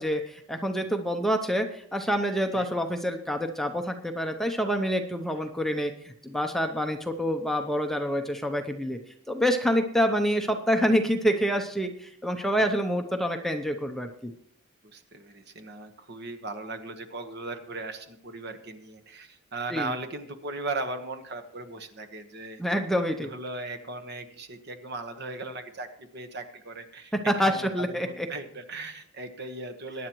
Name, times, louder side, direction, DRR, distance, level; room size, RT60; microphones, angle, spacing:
voice 1, 0.0-5.9 6.2-9.0 9.3-14.3 19.7-19.9 22.6-23.3 27.1-28.3, equal, ahead, 4 dB, 0.7 m, -27 dB
voice 2, 14.8-22.6 23.2-30.1, right 2 dB, 50° right, 8 dB, 1.3 m, -38 dB
22.5 x 10.0 x 3.1 m, 0.66 s
head